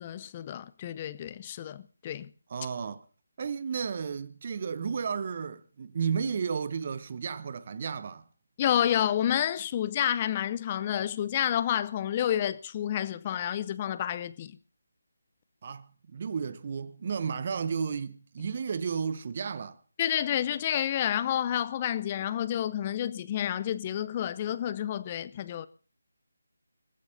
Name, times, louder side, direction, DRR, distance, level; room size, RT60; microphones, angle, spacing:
voice 1, 0.0-2.3 8.6-14.6 20.0-25.7, left 10 dB, 25° left, 0.6 m, -29 dB
voice 2, 2.5-3.0 3.4-8.2 15.6-19.8, right 6 dB, 40° right, 0.8 m, -33 dB
29.0 x 15.0 x 2.7 m
figure-of-eight pair, 155°, 0 cm